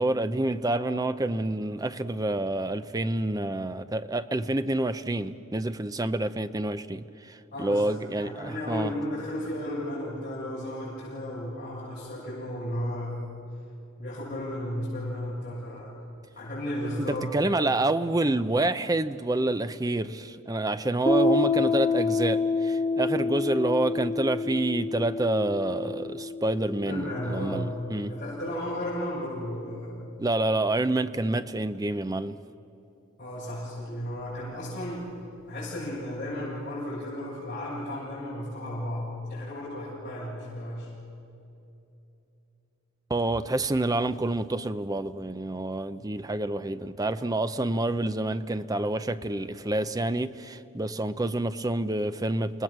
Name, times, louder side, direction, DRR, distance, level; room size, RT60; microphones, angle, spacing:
voice 1, 0.0-8.9 17.0-28.1 30.2-32.4 43.1-52.6, right 2 dB, 15° right, 0.6 m, -28 dB
voice 2, 7.5-7.9 8.2-13.1 14.0-15.9 16.3-17.7 26.8-27.7 28.1-30.0 33.2-35.1 35.5-40.9, left 1 dB, 35° left, 7.9 m, -34 dB
Piano, 21.1-28.3, left 3 dB, 20° left, 1.3 m, -28 dB
28.5 x 19.0 x 7.5 m
head